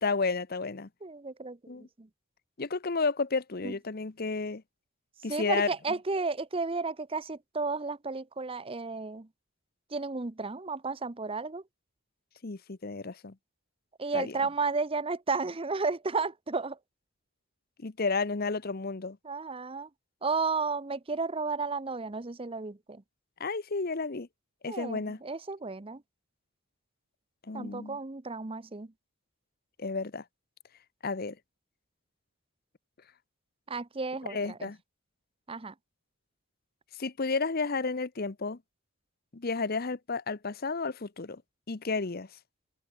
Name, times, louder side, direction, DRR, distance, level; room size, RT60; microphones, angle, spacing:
voice 1, 0.0-0.9 1.7-1.9 2.6-4.6 5.2-5.7 12.4-13.3 14.1-14.4 17.8-19.2 23.4-24.3 24.6-25.2 27.4-28.0 29.8-30.2 31.0-31.4 34.3-34.8 37.0-38.6 39.3-41.4 41.7-42.3, left 4 dB, 45° left, 0.8 m, -32 dB
voice 2, 1.0-2.1 3.6-3.7 5.3-9.3 9.9-11.6 14.0-16.8 19.2-19.9 20.2-23.0 24.7-26.0 27.5-28.9 33.7-34.7 35.5-35.7, right 4 dB, 25° right, 0.7 m, -33 dB
head